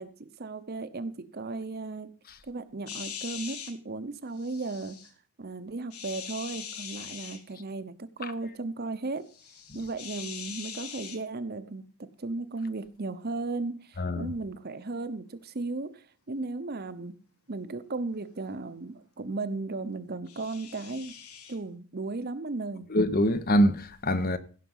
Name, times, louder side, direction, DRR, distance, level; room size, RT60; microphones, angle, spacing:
voice 1, 0.0-2.1 2.4-5.0 5.4-9.3 9.7-11.9 12.2-17.2 17.5-21.2 21.5-22.9, right 3 dB, 45° right, 0.8 m, -35 dB
sound 1, 2.9-3.7 4.4-5.1 5.9-7.4 9.3-11.2 20.3-21.6, left 8 dB, 90° left, 2.0 m, -42 dB
voice 2, 14.0-14.3 22.9-24.4, equal, 45° left, 0.9 m, -24 dB
16.0 x 6.0 x 5.5 m
head